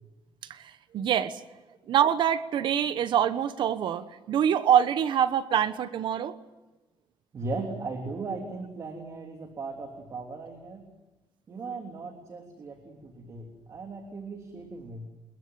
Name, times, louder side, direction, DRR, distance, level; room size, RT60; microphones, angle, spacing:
voice 1, 0.5-1.4 1.9-6.4, right 9 dB, 65° right, 13 dB, 1.2 m, -25 dB
voice 2, 7.3-10.8 11.5-15.1, right 3 dB, 40° right, 3 dB, 3.3 m, -37 dB
28.5 x 21.5 x 7.7 m, 1.1 s
cardioid pair, 140°, 9 cm